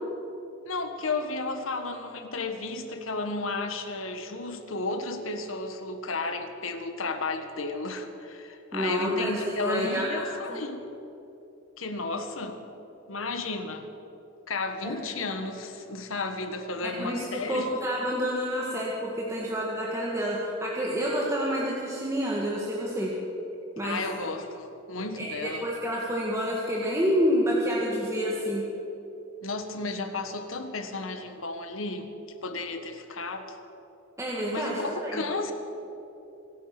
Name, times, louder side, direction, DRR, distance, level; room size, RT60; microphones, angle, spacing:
voice 1, 0.6-10.9 11.8-12.6 13.1-13.9 14.5-17.7 23.8-25.7 29.4-32.1 32.4-33.6 34.5-35.5, left 3 dB, 80° left, 7 dB, 1.5 m, -33 dB
voice 2, 8.7-10.6 14.8-14.9 16.8-23.1 23.8-24.0 25.2-28.7 34.2-35.2, equal, 15° right, -4 dB, 1.8 m, -28 dB
26.0 x 9.3 x 6.0 m, 3.0 s
head